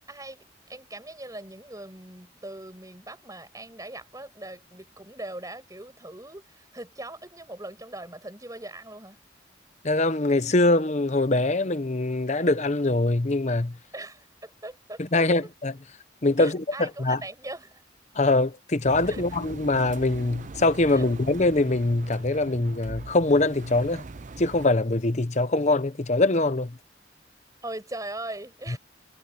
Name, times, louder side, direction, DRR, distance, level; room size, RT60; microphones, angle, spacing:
voice 1, 0.1-0.4 0.7-9.2 13.9-15.2 16.4-17.8 19.1-19.2 20.9-21.1 27.6-28.8, right 1 dB, 20° right, 6.3 m, -40 dB
voice 2, 9.8-13.8 15.1-15.8 16.2-17.2 18.1-24.0 24.4-26.8 28.7-28.8, left 2 dB, 40° left, 0.9 m, -23 dB
Engine, 18.8-24.7, right 3 dB, 40° right, 0.6 m, -41 dB
head